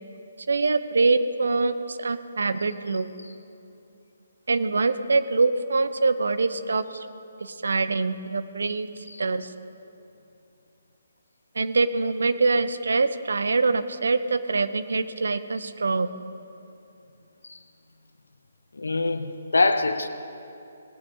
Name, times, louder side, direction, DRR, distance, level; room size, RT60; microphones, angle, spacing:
voice 1, 0.5-3.1 4.5-7.1 7.4-8.9 9.2-9.5 11.6-16.1, right 3 dB, 65° right, 12 dB, 0.6 m, -24 dB
voice 2, 18.7-20.1, left 3 dB, 75° left, 10 dB, 0.8 m, -24 dB
18.5 x 9.6 x 3.7 m, 2.7 s
figure-of-eight pair, 140°, 0 cm